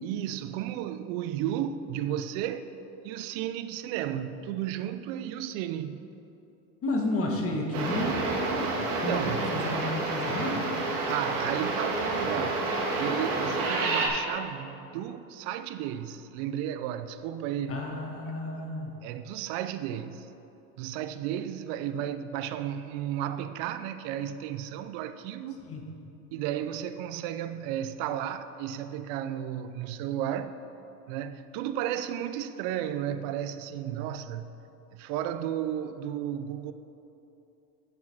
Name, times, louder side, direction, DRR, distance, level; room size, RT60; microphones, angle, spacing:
voice 1, 0.0-2.7 3.0-6.1 8.7-9.5 11.1-12.6 13.0-17.8 19.0-20.3 20.8-25.6 26.3-30.5 31.1-34.5 34.9-36.7, right 10 dB, 60° right, 0.7 m, -33 dB
voice 2, 6.8-8.1 9.0-10.7 17.7-19.0 25.7-25.8, left 2 dB, 30° left, 1.8 m, -31 dB
sound 1, 7.7-14.1, right 3 dB, 80° right, 2.0 m, -29 dB
8.0 x 7.3 x 7.4 m
supercardioid pair, 110°, 44 cm